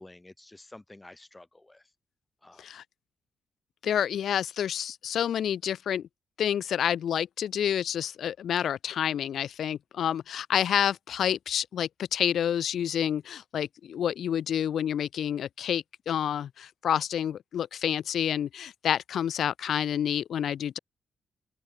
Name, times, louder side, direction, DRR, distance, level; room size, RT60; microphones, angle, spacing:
voice 1, 0.0-1.9 2.4-2.6, left 2 dB, 20° left, 2.6 m, -50 dB
voice 2, 3.8-6.1 6.4-20.8, left 9 dB, 70° left, 0.4 m, -29 dB
open air
hypercardioid pair, 40°, 0 cm